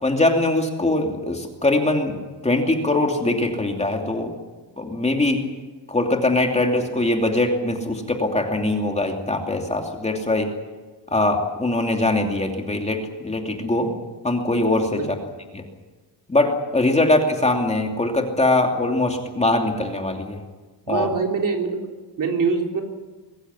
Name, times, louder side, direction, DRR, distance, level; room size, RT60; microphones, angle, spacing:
voice 1, 0.0-2.2 2.4-4.3 4.8-5.4 5.9-10.5 11.1-13.9 14.2-15.0 15.5-15.6 16.3-20.4 20.9-21.1, left 2 dB, 15° left, 3 dB, 2.7 m, -22 dB
voice 2, 20.9-21.9 22.2-22.8, right 4 dB, 45° right, 2 dB, 3.6 m, -23 dB
22.5 x 15.0 x 9.8 m, 1.3 s
cardioid pair, 120°, 44 cm